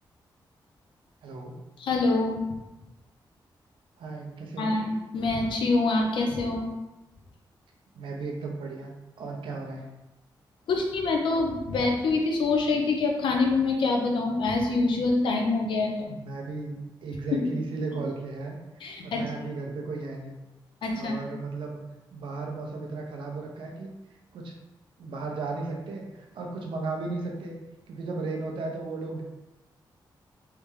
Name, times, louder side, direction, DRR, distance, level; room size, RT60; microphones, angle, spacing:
voice 1, 1.2-1.5 4.0-4.7 7.9-9.8 16.1-20.4 21.0-21.8 22.1-23.9 24.3-24.5 25.0-27.5 27.9-29.2, right 3 dB, 85° right, 0 dB, 0.7 m, -35 dB
voice 2, 1.8-2.4 4.6-6.7 10.7-16.1 17.3-17.5 18.8-19.2 20.8-21.1, left 3 dB, 80° left, 1 dB, 0.7 m, -25 dB
3.5 x 3.4 x 3.2 m, 1.0 s
wide cardioid pair, 175°, 8 cm